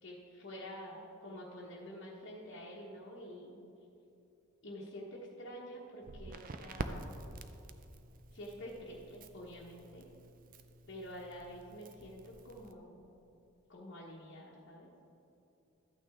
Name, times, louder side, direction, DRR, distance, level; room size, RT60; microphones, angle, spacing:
voice 1, 0.0-3.7 4.6-7.1 8.3-10.1 10.9-13.1 13.7-14.9, equal, 60° left, -5 dB, 1.2 m, -48 dB
Crackle, 6.0-12.7, right 2 dB, 40° right, 0.5 m, -47 dB
13.0 x 8.9 x 3.6 m, 2.9 s
head